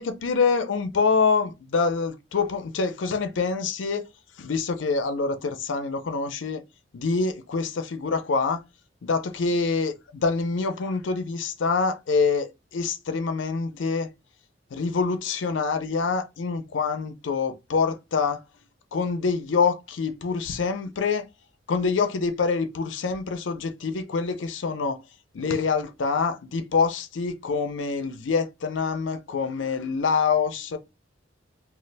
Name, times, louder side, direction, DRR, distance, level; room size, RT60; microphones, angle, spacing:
voice 1, 0.0-4.1 4.4-6.6 6.9-8.6 9.0-14.1 14.7-18.4 18.9-21.3 21.7-25.0 25.3-30.8, left 4 dB, 85° left, 0.5 m, -26 dB
2.4 x 2.1 x 3.9 m
head